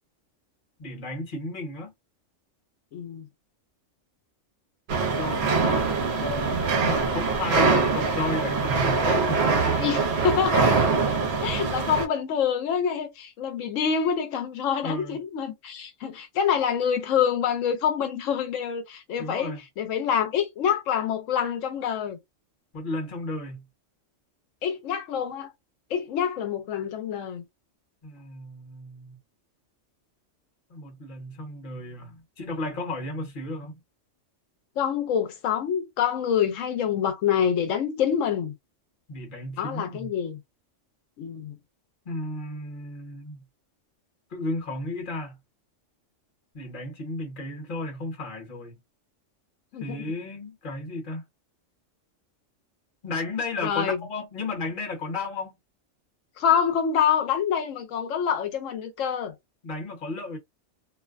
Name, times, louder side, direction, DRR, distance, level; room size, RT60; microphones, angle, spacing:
voice 1, 0.8-1.9 5.0-9.4 14.8-15.2 19.2-19.6 22.7-23.6 28.0-29.2 30.7-33.7 39.1-40.1 42.0-43.4 44.3-45.4 46.5-48.8 49.8-51.2 53.0-55.6 59.6-60.4, left 2 dB, 45° left, 1.1 m, -34 dB
voice 2, 2.9-3.2 9.8-10.9 11.4-22.2 24.6-25.5 25.9-27.4 34.8-38.5 39.6-40.4 41.2-41.5 49.7-50.1 53.6-54.0 56.4-59.3, left 8 dB, 90° left, 1.0 m, -26 dB
sound 1, 4.9-12.1, right 4 dB, 65° right, 0.9 m, -23 dB
2.6 x 2.1 x 2.4 m
omnidirectional pair, 1.3 m